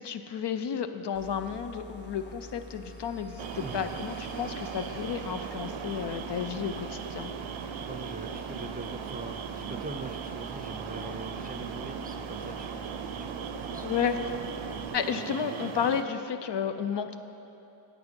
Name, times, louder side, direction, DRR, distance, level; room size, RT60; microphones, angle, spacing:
voice 1, 0.0-7.3 13.8-14.2 14.9-17.2, left 7 dB, 60° left, 9 dB, 0.5 m, -32 dB
sound 1, 1.1-14.9, equal, 20° left, 0.8 m, -47 dB
sound 2, 2.4-6.2, left 1 dB, 85° left, 2.1 m, -57 dB
sound 3, 3.4-16.0, right 7 dB, 70° right, 0.6 m, -38 dB
voice 2, 3.6-3.9 7.9-14.4, right 2 dB, 20° right, 5 dB, 0.5 m, -43 dB
8.4 x 8.2 x 5.2 m, 2.9 s
wide cardioid pair, 85°, 49 cm